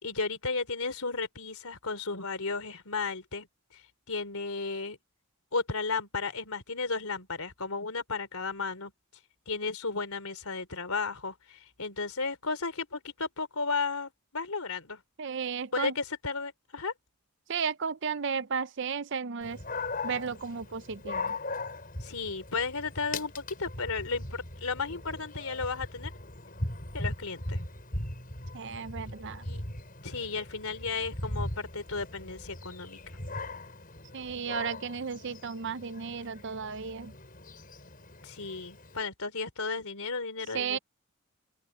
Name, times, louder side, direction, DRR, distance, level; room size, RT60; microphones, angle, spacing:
voice 1, 0.0-3.5 3.7-5.0 5.5-8.9 9.5-15.0 15.7-16.9 22.0-26.1 26.9-27.6 29.4-29.6 30.0-33.0 38.2-40.8, left 4 dB, 80° left, 3.4 m, -34 dB
voice 2, 15.2-15.9 17.5-19.6 20.0-21.4 28.5-29.4 34.1-37.1 40.5-40.8, right 6 dB, 55° right, 0.6 m, -34 dB
Dog, 19.4-39.0, left 2 dB, 40° left, 6.4 m, -39 dB
open air
head